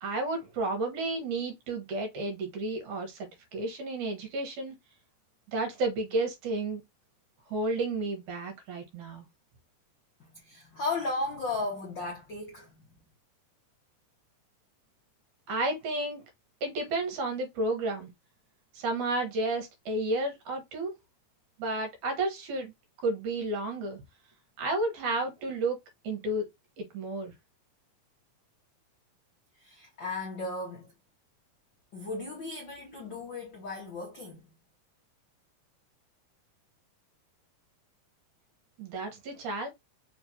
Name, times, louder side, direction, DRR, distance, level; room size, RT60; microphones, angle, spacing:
voice 1, 0.0-4.8 5.5-6.8 7.5-9.2 15.5-16.2 16.6-18.1 18.7-20.9 21.6-22.7 23.0-24.0 24.6-25.8 26.0-26.5 26.8-27.3 38.8-39.7, right 2 dB, 70° right, 2.6 m, -32 dB
voice 2, 10.2-12.8 29.6-30.9 31.9-34.5, left 3 dB, 60° left, 1.2 m, -35 dB
5.2 x 3.1 x 2.8 m
omnidirectional pair, 3.8 m